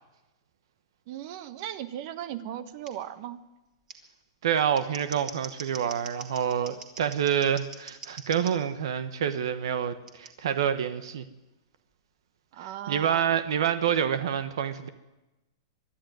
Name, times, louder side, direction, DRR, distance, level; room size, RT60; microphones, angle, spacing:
voice 1, 1.1-3.4 12.5-13.4, right 11 dB, 45° right, 13 dB, 1.2 m, -37 dB
Scissors, 2.8-2.9 3.9-4.0 4.6-8.5 10.1-10.3, right 4 dB, 20° right, 2.5 m, -43 dB
voice 2, 4.4-11.2 12.9-14.9, right 8 dB, 75° right, 11 dB, 1.3 m, -27 dB
24.0 x 12.0 x 9.4 m, 1.0 s
hypercardioid pair, 150°, 3 cm